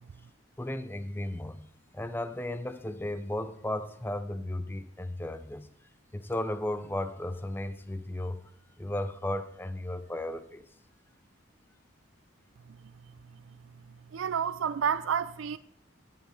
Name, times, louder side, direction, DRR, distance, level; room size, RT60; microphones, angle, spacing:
voice 1, 0.6-1.7 1.9-5.7 6.1-8.5 8.8-10.7, left 1 dB, 10° left, 0.6 m, -35 dB
voice 2, 14.1-15.6, right 7 dB, 80° right, 0.4 m, -29 dB
15.0 x 5.7 x 4.3 m
head